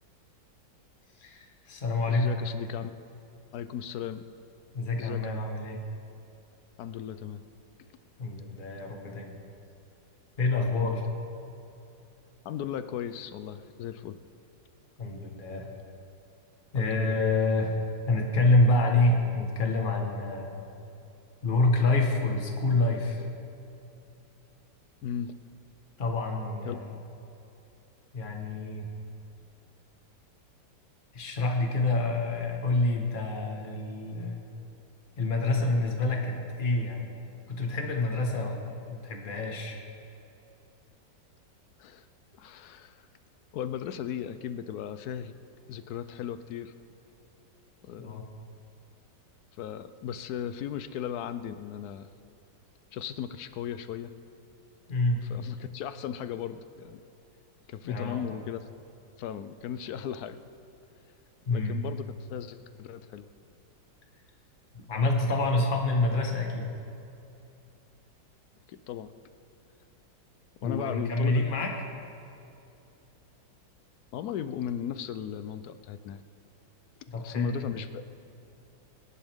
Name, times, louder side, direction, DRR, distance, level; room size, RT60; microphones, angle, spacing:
voice 1, 1.2-2.3 4.7-5.8 8.2-9.4 10.4-11.0 15.0-15.7 16.7-20.7 21.4-23.2 26.0-27.0 28.1-28.9 31.1-34.4 35.2-37.2 37.5-39.8 48.0-48.2 54.9-55.2 57.8-58.2 61.4-61.8 64.9-66.7 70.6-71.7 77.1-77.7, left 2 dB, 30° left, 1 dB, 1.5 m, -27 dB
voice 2, 2.1-3.1 3.5-4.2 5.0-5.4 6.8-7.4 10.8-11.0 12.4-14.2 16.7-17.2 25.0-25.3 26.6-26.8 41.8-42.1 42.4-43.0 43.5-45.3 45.7-46.7 47.8-48.2 49.6-52.1 52.9-54.1 55.3-57.0 57.7-58.6 59.2-60.4 61.5-63.3 68.7-69.1 70.6-71.5 74.1-76.2 77.2-78.1, left 9 dB, 70° left, 11 dB, 1.0 m, -36 dB
22.5 x 10.5 x 3.6 m, 2.7 s
omnidirectional pair, 2.0 m